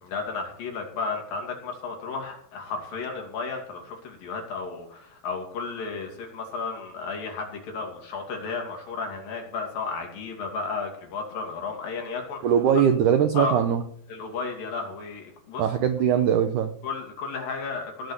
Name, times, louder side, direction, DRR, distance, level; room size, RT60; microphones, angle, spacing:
voice 1, 0.0-12.5 13.3-13.6 14.1-15.6 16.8-18.1, left 4 dB, 60° left, 1 dB, 4.4 m, -33 dB
voice 2, 12.4-13.8 15.6-16.7, right 8 dB, 85° right, 8 dB, 1.8 m, -21 dB
17.0 x 6.5 x 6.6 m, 0.65 s
omnidirectional pair, 4.7 m